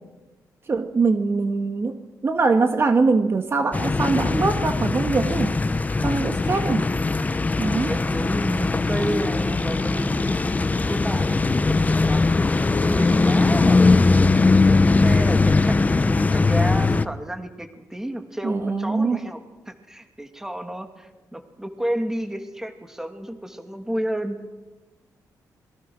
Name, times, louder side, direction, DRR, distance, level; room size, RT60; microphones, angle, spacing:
voice 1, 0.7-2.0 2.2-5.5 6.0-6.8 7.6-7.9 18.4-19.2, right 4 dB, 35° right, 6 dB, 1.8 m, -22 dB
sound 1, 3.7-17.1, left 3 dB, 20° left, 1.0 m, -20 dB
voice 2, 6.0-6.8 7.9-10.4 10.8-12.3 12.7-24.4, right 1 dB, 5° right, 6 dB, 2.6 m, -31 dB
27.5 x 22.5 x 6.3 m, 1.2 s
cardioid pair, 110°, 7 cm